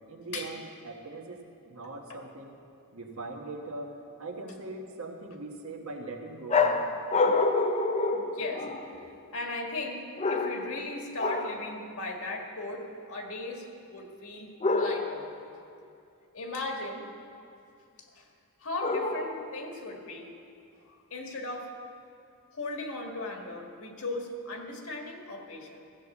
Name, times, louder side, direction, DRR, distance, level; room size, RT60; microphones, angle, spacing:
voice 1, 0.1-2.6 2.9-7.0, right 2 dB, 65° right, 2 dB, 1.4 m, -41 dB
sound 1, 6.5-9.0 10.2-10.8 11.2-11.7 14.6-15.3 18.8-19.5, left 3 dB, 30° left, 0.7 m, -27 dB
voice 2, 8.3-8.7 9.3-10.0 10.3-13.7 13.9-15.3 16.3-17.1 18.0-18.3 18.6-20.3 20.9-21.7 22.5-25.8, left 2 dB, 70° left, 2 dB, 1.8 m, -37 dB
14.5 x 8.2 x 7.2 m, 2.5 s
head